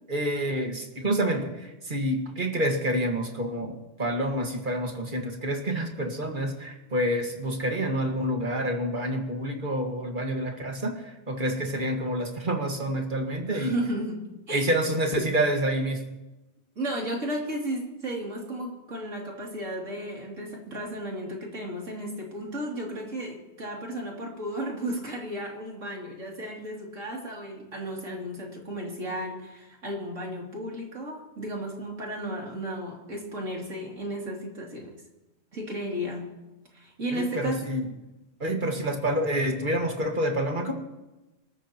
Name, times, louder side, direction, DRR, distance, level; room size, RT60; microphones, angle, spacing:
voice 1, 0.1-13.8 14.5-16.0 37.1-37.9 38.4-40.7, right 1 dB, 40° right, 3 dB, 2.0 m, -28 dB
voice 2, 13.5-14.6 16.7-34.9 35.5-36.3 36.7-37.6, right 1 dB, 85° right, -2 dB, 3.4 m, -34 dB
26.0 x 13.5 x 3.0 m, 1.0 s
omnidirectional pair, 1.3 m